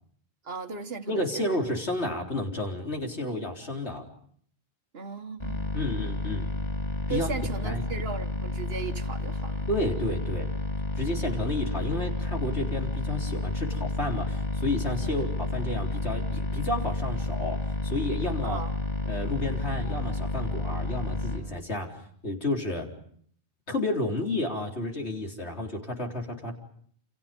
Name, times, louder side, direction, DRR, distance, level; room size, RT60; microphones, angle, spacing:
voice 1, 0.5-1.6 4.9-5.7 7.1-9.7 15.0-15.3 18.4-18.8 25.4-25.6, right 5 dB, 65° right, 1.7 m, -37 dB
voice 2, 1.1-4.0 5.7-6.5 7.1-7.3 7.6-7.9 9.7-10.5 11.0-18.6 19.1-21.9 22.2-22.9 23.7-26.5, left 2 dB, 85° left, 4.3 m, -31 dB
sound 1, 5.4-21.4, left 1 dB, 45° left, 6.1 m, -31 dB
29.5 x 28.5 x 5.3 m
omnidirectional pair, 1.1 m